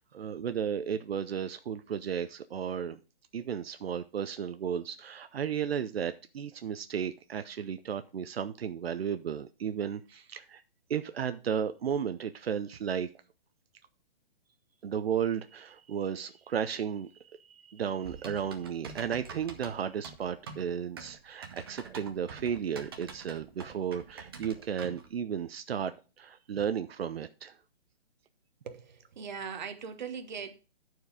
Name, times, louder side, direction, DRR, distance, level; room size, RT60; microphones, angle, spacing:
voice 1, 0.0-3.0 3.3-10.6 10.9-13.1 14.8-25.9 26.2-27.5, right 8 dB, 85° right, 0.7 m, -34 dB
Typing, 18.0-25.1, right 5 dB, 25° right, 0.7 m, -46 dB
voice 2, 28.6-30.6, right 6 dB, 50° right, 1.1 m, -40 dB
9.7 x 4.6 x 5.0 m
hypercardioid pair, 175°, 29 cm